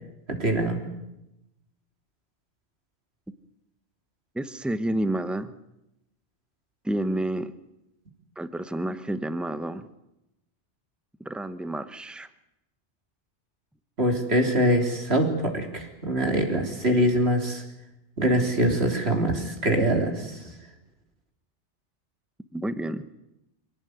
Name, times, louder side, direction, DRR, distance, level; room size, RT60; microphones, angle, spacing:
voice 1, 0.3-0.8 14.0-17.6 18.2-20.4, right 1 dB, 60° right, 3 dB, 3.8 m, -24 dB
voice 2, 4.3-5.5 6.8-7.5 8.4-9.9 11.2-12.3 22.5-23.1, right 1 dB, ahead, 11 dB, 0.9 m, -29 dB
25.0 x 18.0 x 9.4 m, 0.90 s
omnidirectional pair, 1.2 m